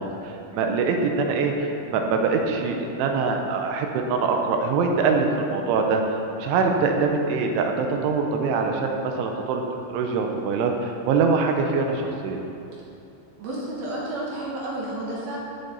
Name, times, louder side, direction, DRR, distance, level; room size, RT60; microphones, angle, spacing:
voice 1, 0.0-9.6 9.9-12.4, right 4 dB, 90° right, 3 dB, 3.3 m, -24 dB
voice 2, 13.4-15.4, right 1 dB, 60° right, -5 dB, 3.0 m, -31 dB
18.0 x 6.8 x 4.1 m, 2.9 s
omnidirectional pair, 5.4 m